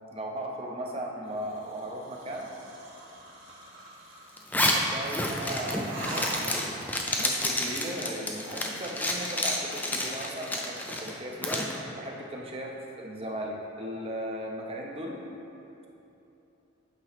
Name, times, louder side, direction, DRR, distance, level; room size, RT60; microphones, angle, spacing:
voice 1, 0.1-2.5 4.5-6.6 7.2-11.6 11.9-12.7 13.0-15.2, right 1 dB, 25° right, -1 dB, 0.7 m, -37 dB
sound 1, 1.3-4.7 5.8-6.9, right 1 dB, 60° right, 1.2 m, -42 dB
Zipper (clothing), 4.4-11.7, left 1 dB, 10° left, 0.4 m, -30 dB
8.7 x 3.0 x 5.9 m, 2.9 s
head